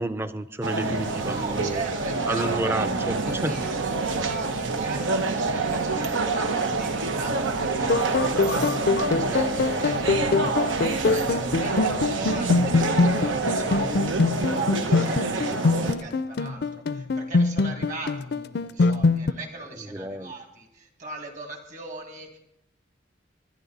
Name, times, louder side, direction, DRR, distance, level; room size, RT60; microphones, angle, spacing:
voice 1, 0.0-1.8 2.3-3.6 9.1-9.4 15.1-15.2 15.5-15.6 19.8-20.3, right 1 dB, 10° right, 12 dB, 0.5 m, -31 dB
sound 1, 0.6-15.9, right 3 dB, 85° right, 1.1 m, -27 dB
sound 2, 0.9-14.3, equal, 60° right, 6.3 m, -44 dB
voice 2, 1.1-2.9 3.1-10.2 10.8-14.4 14.7-22.4, right 3 dB, 40° right, 4 dB, 2.2 m, -40 dB
sound 3, 7.8-19.3, left 3 dB, 55° left, 0.4 m, -24 dB
20.5 x 11.0 x 4.1 m, 0.82 s
head